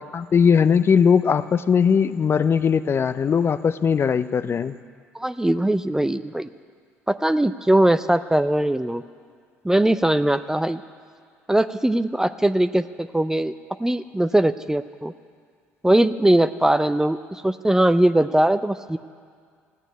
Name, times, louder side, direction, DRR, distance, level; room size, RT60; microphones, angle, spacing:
voice 1, 0.1-4.8, left 6 dB, 35° left, 13 dB, 0.5 m, -19 dB
voice 2, 5.1-6.5 7.1-9.0 9.6-10.8 11.5-13.5 13.8-15.1 15.8-17.2 17.4-19.0, right 1 dB, 10° right, 13 dB, 0.5 m, -20 dB
15.0 x 9.0 x 9.5 m, 2.1 s
hypercardioid pair, 55°, 7 cm